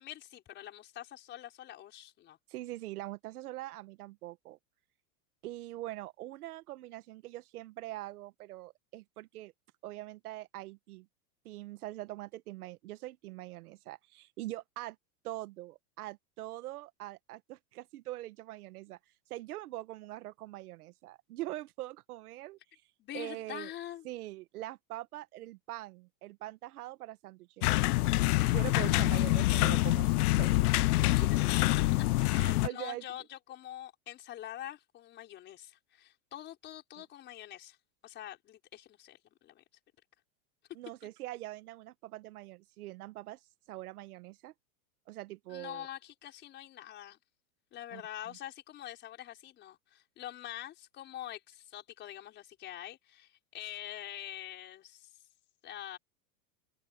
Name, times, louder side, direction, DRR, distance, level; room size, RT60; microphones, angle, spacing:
voice 1, 0.0-2.4 23.0-24.1 31.3-32.1 32.3-37.8 38.0-39.6 45.5-47.2 47.7-55.1 55.6-56.0, left 12 dB, 20° left, 5.3 m, -45 dB
voice 2, 2.5-4.6 5.4-9.5 9.8-11.1 11.4-15.0 15.2-19.0 19.3-22.6 23.1-23.7 24.0-27.7 28.4-30.6 31.0-31.4 32.3-33.0 40.7-43.4 43.7-44.5 45.1-45.9 47.9-48.4, right 16 dB, 65° right, 1.4 m, -43 dB
sound 1, 27.6-32.7, left 19 dB, 65° left, 0.6 m, -26 dB
open air
supercardioid pair, 180°, 48 cm